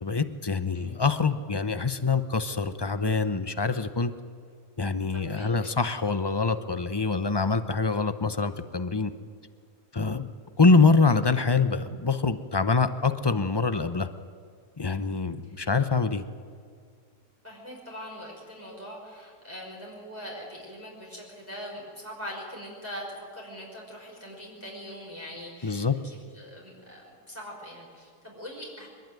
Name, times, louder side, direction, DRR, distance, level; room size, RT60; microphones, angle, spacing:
voice 1, 0.0-4.1 4.8-9.1 9.9-10.3 10.6-14.1 14.8-16.2 25.6-26.0, left 4 dB, 30° left, 10 dB, 0.4 m, -25 dB
voice 2, 5.1-5.8 15.4-15.6 17.4-28.9, equal, 10° right, -3 dB, 5.0 m, -42 dB
23.5 x 21.0 x 9.3 m, 2.1 s
omnidirectional pair, 1.8 m